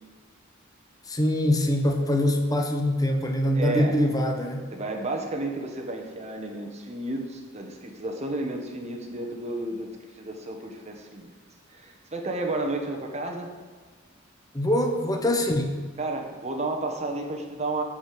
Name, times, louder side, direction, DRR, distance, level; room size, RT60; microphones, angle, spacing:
voice 1, 1.1-4.7 14.5-15.8, left 1 dB, 20° left, 3 dB, 1.2 m, -24 dB
voice 2, 3.5-4.0 4.7-9.9 10.2-11.3 11.7-13.5 16.0-17.8, right 2 dB, 35° right, 2 dB, 1.5 m, -32 dB
12.5 x 5.1 x 7.9 m, 1.5 s
head